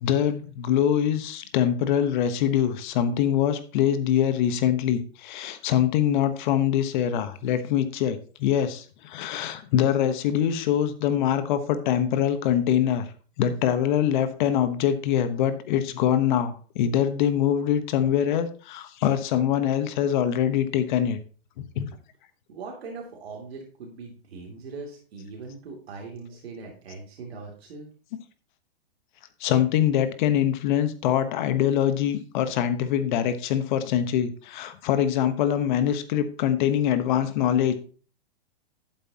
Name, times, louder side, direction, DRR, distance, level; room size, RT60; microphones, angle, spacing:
voice 1, 0.0-13.1 13.4-21.2 21.6-21.9 29.4-37.8, left 10 dB, 50° left, 10 dB, 1.2 m, -24 dB
voice 2, 22.5-27.9, right 4 dB, 75° right, 0 dB, 2.9 m, -40 dB
11.5 x 8.6 x 2.9 m, 0.39 s
hypercardioid pair, 130°, 31 cm